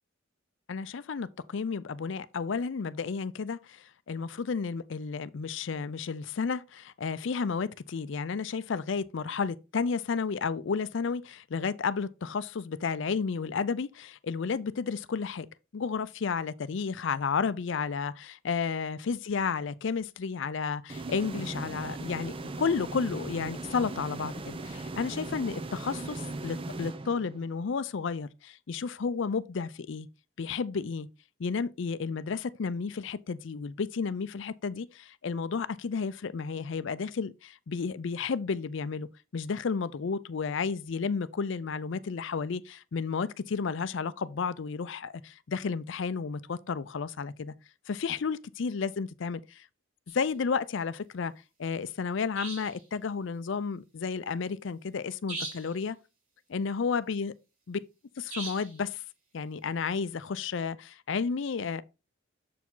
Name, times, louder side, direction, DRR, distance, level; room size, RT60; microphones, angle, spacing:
voice 1, 0.7-15.5 15.7-30.1 30.4-31.1 31.4-39.1 39.3-47.5 47.9-49.7 50.1-51.3 51.6-56.0 56.5-57.3 57.7-57.8 58.2-59.0 59.3-61.8, left 5 dB, 60° left, 0.4 m, -32 dB
sound 1, 20.9-27.7, right 2 dB, 25° right, 0.4 m, -38 dB
sound 2, 50.1-50.2 52.3-52.8 55.3-55.8 58.3-58.8, right 3 dB, 85° right, 3.2 m, -39 dB
7.1 x 4.8 x 3.8 m
head